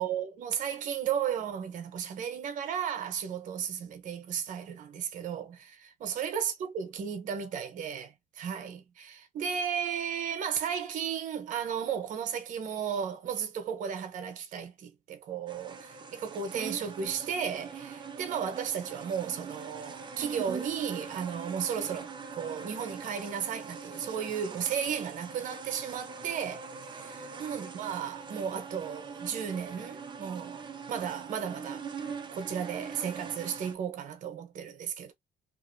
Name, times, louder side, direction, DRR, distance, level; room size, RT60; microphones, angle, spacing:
voice 1, 0.0-22.1 22.4-26.7 27.4-31.9 32.3-35.1, right 8 dB, 55° right, 0.9 m, -34 dB
sound 1, 15.5-33.7, right 5 dB, 30° right, 0.7 m, -42 dB
3.0 x 2.6 x 2.6 m
cardioid pair, 125°, 16 cm